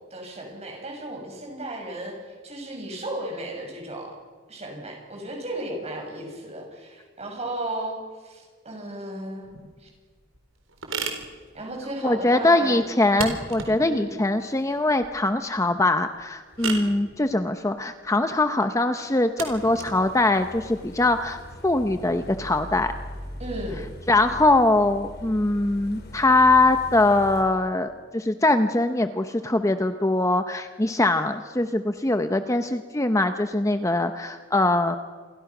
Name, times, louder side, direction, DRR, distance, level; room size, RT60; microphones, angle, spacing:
voice 1, 0.1-2.2 2.4-4.1 4.5-9.9 11.5-12.9 13.8-14.2 23.4-23.8, right 1 dB, 35° right, 2 dB, 6.8 m, -35 dB
sound 1, 9.4-21.8, right 4 dB, 80° right, 4.0 m, -38 dB
voice 2, 12.0-22.9 24.1-35.0, left 2 dB, 15° left, 8 dB, 0.8 m, -22 dB
sound 2, 19.5-27.4, left 1 dB, 55° left, 4.7 m, -41 dB
28.5 x 23.0 x 6.1 m, 1.5 s
head